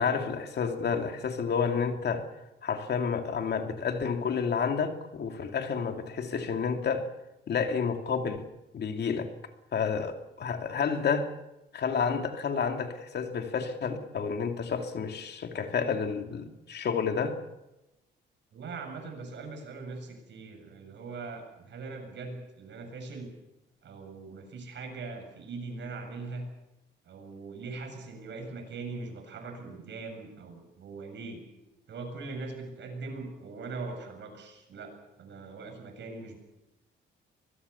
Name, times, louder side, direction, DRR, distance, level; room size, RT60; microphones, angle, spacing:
voice 1, 0.0-2.3 2.6-7.1 7.5-8.4 8.7-9.3 9.7-11.3 11.7-17.4, left 6 dB, 55° left, 6 dB, 2.7 m, -30 dB
voice 2, 18.5-23.3 23.8-26.4 27.0-31.4 31.9-34.9 35.2-36.4, right 3 dB, 65° right, 4 dB, 7.8 m, -41 dB
24.0 x 21.0 x 7.0 m, 0.95 s
cardioid pair, 90°, 20 cm